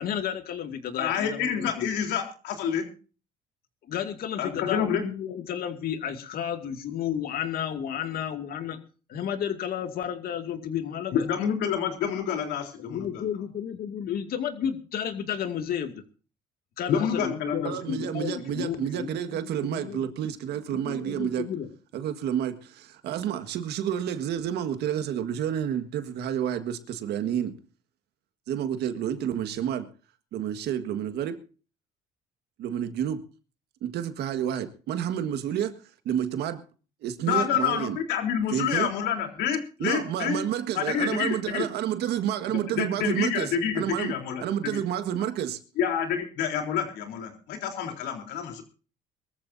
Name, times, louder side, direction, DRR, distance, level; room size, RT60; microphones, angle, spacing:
voice 1, 0.0-1.9 3.9-8.8 9.1-11.3 12.9-16.0 16.8-20.1 20.7-21.7, left 9 dB, 65° left, 2.4 m, -32 dB
voice 2, 1.0-2.8 4.4-5.0 11.1-13.2 16.9-17.7 37.3-40.4 40.7-41.7 42.5-44.8 45.8-48.6, left 7 dB, 85° left, 3.8 m, -28 dB
voice 3, 17.6-21.5 21.9-27.6 28.5-29.9 30.3-31.4 32.6-33.3 33.8-35.8 36.0-36.6 37.0-38.0 38.5-38.9 39.8-45.6, right 10 dB, 75° right, 1.7 m, -30 dB
23.0 x 14.0 x 2.8 m
cardioid pair, 110°, 17 cm